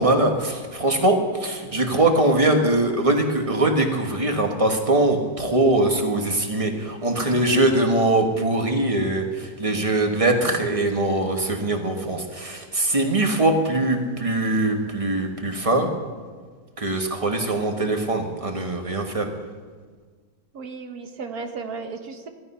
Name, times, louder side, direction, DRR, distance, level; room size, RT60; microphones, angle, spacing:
voice 1, 0.0-15.9 16.8-19.3, right 2 dB, 20° right, 3 dB, 1.5 m, -22 dB
voice 2, 20.5-22.3, right 4 dB, 75° right, 6 dB, 1.7 m, -34 dB
15.5 x 12.5 x 5.7 m, 1.6 s
omnidirectional pair, 1.6 m